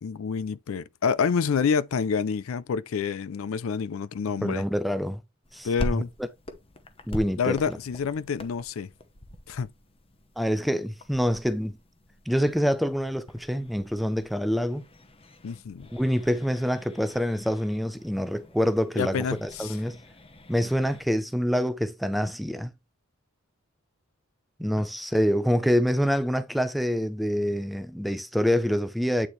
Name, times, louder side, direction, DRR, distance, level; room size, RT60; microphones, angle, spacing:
voice 1, 0.0-4.6 5.6-6.1 7.4-8.9 9.5-9.7 15.4-15.9 18.9-19.8, left 6 dB, 70° left, 0.4 m, -28 dB
voice 2, 4.4-5.2 5.5-6.0 7.1-7.8 10.4-11.8 12.3-14.8 15.9-20.0 20.5-22.7 24.6-29.3, equal, ahead, 0.5 m, -26 dB
sound 1, 5.4-21.1, left 1 dB, 25° left, 0.9 m, -43 dB
8.7 x 4.4 x 3.1 m
head